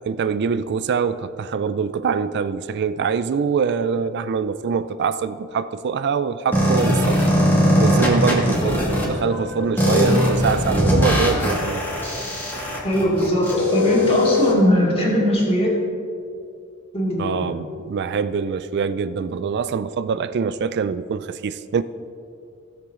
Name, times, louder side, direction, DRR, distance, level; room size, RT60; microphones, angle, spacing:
voice 1, 0.1-7.2 7.8-11.8 17.2-21.8, right 6 dB, 55° right, 13 dB, 0.4 m, -24 dB
sound 1, 6.5-9.0 9.8-14.5, equal, 10° left, 2.0 m, -20 dB
sound 2, 6.9-14.7, left 2 dB, 75° left, 1.9 m, -36 dB
voice 2, 12.8-15.8 16.9-17.5, equal, 30° left, -4 dB, 2.4 m, -20 dB
16.0 x 7.0 x 3.7 m, 2.4 s
head